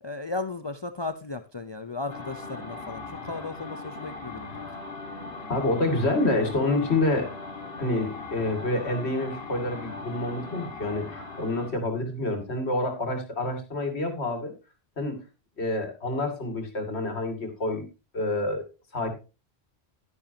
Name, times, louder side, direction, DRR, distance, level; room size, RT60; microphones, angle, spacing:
voice 1, 0.0-4.5, left 3 dB, 30° left, 11 dB, 0.5 m, -35 dB
sound 1, 2.1-11.7, left 3 dB, 65° left, 1.9 m, -39 dB
voice 2, 5.5-7.3 7.8-14.5 15.0-15.2 15.6-17.8 18.1-18.6 18.9-19.1, left 2 dB, 85° left, 6 dB, 2.5 m, -27 dB
12.0 x 10.0 x 2.7 m, 0.30 s
omnidirectional pair, 1.1 m